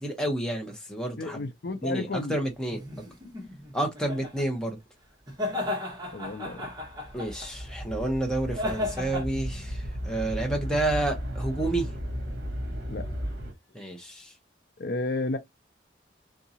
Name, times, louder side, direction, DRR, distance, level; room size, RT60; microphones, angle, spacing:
voice 1, 0.0-1.4 1.8-2.8 3.7-4.8 7.1-11.9 13.7-14.3, right 1 dB, 5° left, 0.9 m, -30 dB
voice 2, 1.2-2.3 6.1-6.7 12.9-13.3 14.8-15.4, left 2 dB, 55° left, 0.5 m, -32 dB
sound 1, 2.7-4.5 5.3-7.6 8.5-9.2, left 2 dB, 20° right, 1.0 m, -34 dB
sound 2, 6.2-13.5, equal, 60° right, 1.0 m, -35 dB
3.6 x 2.7 x 2.8 m
head